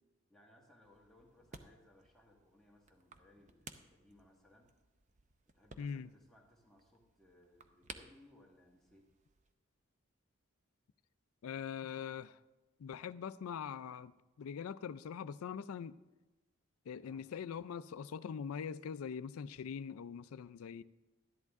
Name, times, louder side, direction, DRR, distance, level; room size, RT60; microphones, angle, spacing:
voice 1, 0.3-4.7 5.5-9.1 16.9-17.3, left 1 dB, ahead, 1.5 m, -65 dB
sound 1, 0.8-9.5, right 4 dB, 35° right, 0.6 m, -58 dB
voice 2, 5.8-6.1 11.4-12.4 12.8-14.1 14.4-16.0 16.9-20.8, left 7 dB, 80° left, 0.4 m, -42 dB
13.0 x 10.5 x 3.6 m
head